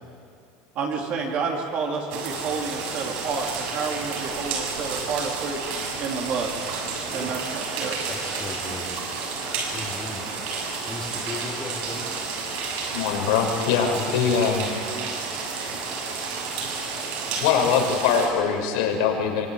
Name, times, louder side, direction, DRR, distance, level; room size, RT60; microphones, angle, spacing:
voice 1, 0.7-5.6 6.0-6.5 7.1-8.0, right 5 dB, 40° right, 0 dB, 3.3 m, -29 dB
sound 1, 2.1-18.3, right 4 dB, 60° right, 7.1 m, -31 dB
voice 2, 8.1-8.9 9.7-10.3 10.9-12.1 13.9-14.3, left 3 dB, 10° left, -4 dB, 2.9 m, -36 dB
voice 3, 12.9-14.6 17.4-19.5, left 7 dB, 75° left, 2 dB, 5.6 m, -22 dB
25.0 x 24.0 x 9.0 m, 2.5 s
cardioid pair, 165°, 4 cm